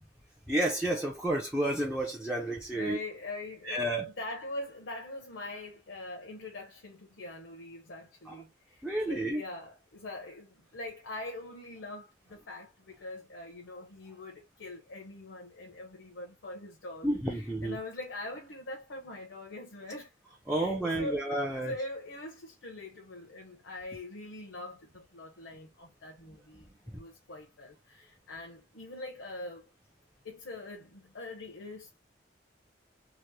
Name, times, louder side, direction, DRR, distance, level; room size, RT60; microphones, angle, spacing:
voice 1, 0.5-3.0 3.6-4.1 8.3-8.4 8.8-9.4 17.0-17.8 20.5-21.7 26.9-27.0, right 1 dB, 5° right, 0.4 m, -31 dB
voice 2, 2.7-20.1 20.5-26.7 27.0-29.7 30.2-32.0, left 2 dB, 75° left, 0.8 m, -43 dB
2.9 x 2.0 x 3.2 m
head